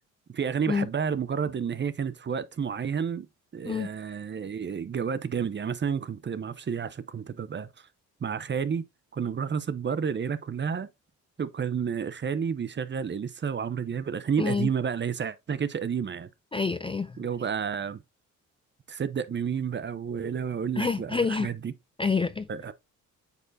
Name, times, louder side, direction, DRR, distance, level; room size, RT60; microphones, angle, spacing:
voice 1, 0.3-3.3 3.5-7.9 8.2-8.8 9.1-10.9 11.4-16.3 17.2-18.0 18.9-21.7 22.5-22.7, right 7 dB, 30° right, 0.7 m, -30 dB
voice 2, 14.4-14.7 16.5-17.2 20.8-21.5 22.0-22.5, left 4 dB, 15° left, 0.4 m, -27 dB
8.1 x 4.4 x 2.7 m
supercardioid pair, 65°, 35 cm